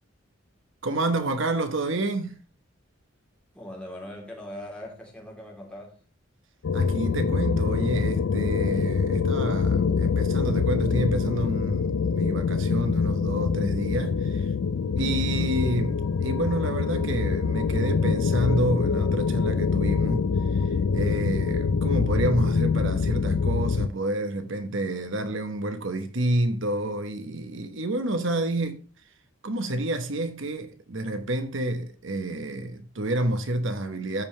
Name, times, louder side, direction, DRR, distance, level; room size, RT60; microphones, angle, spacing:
voice 1, 0.8-2.4 6.7-14.5 15.0-28.8 29.4-34.2, right 1 dB, 65° right, 1.0 m, -29 dB
voice 2, 3.5-6.0 15.1-15.5, left 1 dB, 5° left, 3.0 m, -41 dB
sound 1, 6.6-23.9, left 5 dB, 80° left, 0.4 m, -25 dB
14.5 x 5.4 x 3.2 m
head